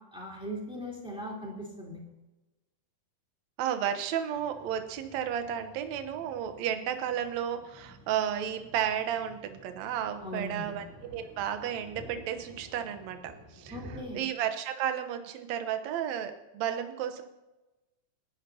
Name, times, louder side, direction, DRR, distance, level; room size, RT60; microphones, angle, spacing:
voice 1, 0.1-2.0 10.2-10.8 13.7-14.2, equal, ahead, -3 dB, 3.2 m, -39 dB
voice 2, 3.6-13.8 14.1-17.2, right 9 dB, 65° right, 7 dB, 2.1 m, -33 dB
sound 1, 4.3-14.0, right 1 dB, 90° right, 7.2 m, -52 dB
29.0 x 11.0 x 2.9 m, 1.1 s
omnidirectional pair, 3.9 m